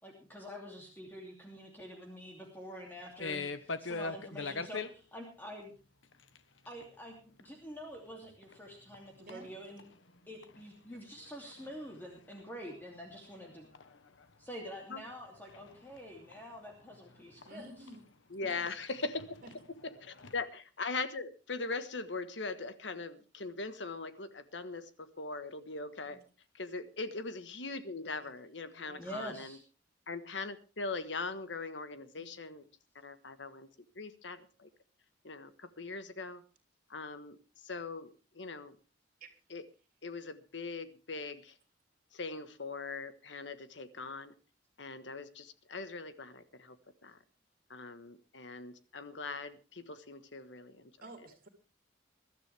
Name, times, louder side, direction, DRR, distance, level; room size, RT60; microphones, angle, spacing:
voice 1, 0.0-5.7 6.7-9.8 10.3-13.7 14.4-17.7 29.0-29.6, equal, 10° left, 0 dB, 2.8 m, -47 dB
sound 1, 3.2-4.9 6.0-6.4 6.6-6.9 7.4-7.5 7.9-8.0 8.3-9.0 9.3-10.6 10.9-14.2 14.6-18.0 18.4-20.4, left 4 dB, 90° left, 1.2 m, -43 dB
voice 2, 17.4-18.0 18.4-18.6 19.4-19.5 26.0-26.2 28.2-28.3 28.8-29.1 32.2-32.3 39.2-39.3 51.0-51.5, right 2 dB, 50° right, 5 dB, 3.3 m, -51 dB
voice 3, 18.3-19.2 19.8-26.2 26.5-29.6 30.1-32.6 32.9-33.7 33.9-34.7 35.2-36.4 36.9-38.8 39.5-39.6 40.0-41.6 42.1-44.3 44.8-46.8 47.0-47.2 47.7-50.9, left 3 dB, 70° left, 11 dB, 1.4 m, -41 dB
22.0 x 12.5 x 3.4 m, 0.32 s
head